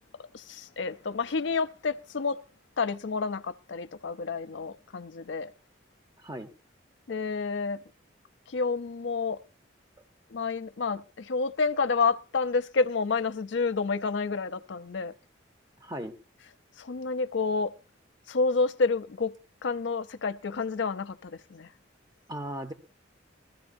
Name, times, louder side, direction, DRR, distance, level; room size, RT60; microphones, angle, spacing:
voice 1, 0.3-2.4 2.8-5.5 7.1-7.8 8.5-9.4 10.3-15.1 16.8-17.7 18.3-19.3 19.6-21.7, left 4 dB, 70° left, 0.6 m, -29 dB
voice 2, 6.2-6.5 15.8-16.1 22.3-22.7, right 1 dB, 20° right, 0.9 m, -36 dB
21.5 x 14.0 x 2.6 m
head